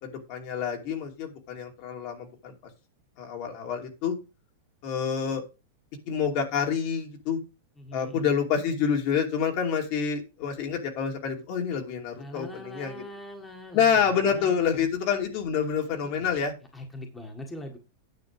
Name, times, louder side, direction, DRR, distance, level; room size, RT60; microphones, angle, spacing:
voice 1, 0.0-2.5 3.2-4.2 4.8-5.4 6.1-7.4 7.9-12.9 13.7-16.5, left 7 dB, 50° left, 3 dB, 2.6 m, -27 dB
voice 2, 7.8-8.3 12.2-14.9 16.0-16.3 16.7-17.8, left 1 dB, 10° left, 2 dB, 1.7 m, -42 dB
9.7 x 6.7 x 4.8 m, 0.29 s
supercardioid pair, 150°, 0 cm